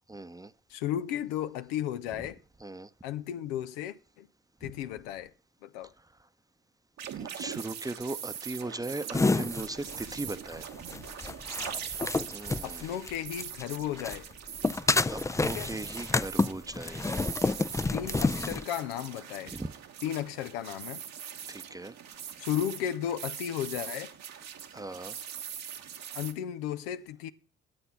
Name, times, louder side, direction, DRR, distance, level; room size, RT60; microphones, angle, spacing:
voice 1, 0.1-0.5 2.6-2.9 4.6-4.7 7.1-10.7 12.3-12.9 15.1-17.0 19.5-19.8 21.5-21.9 24.7-25.2, right 2 dB, 10° right, 0.8 m, -38 dB
voice 2, 0.7-2.4 3.0-4.3 4.6-5.3 5.6-5.9 11.6-12.3 12.6-14.3 15.4-15.7 17.9-19.6 20.0-21.0 22.4-24.1 26.1-27.3, left 11 dB, 80° left, 0.6 m, -34 dB
sound 1, 7.0-26.3, right 9 dB, 65° right, 1.2 m, -42 dB
sound 2, 9.1-13.6 14.0-18.6, left 3 dB, 10° left, 0.4 m, -29 dB
10.5 x 7.8 x 5.8 m
hypercardioid pair, 45°, 29 cm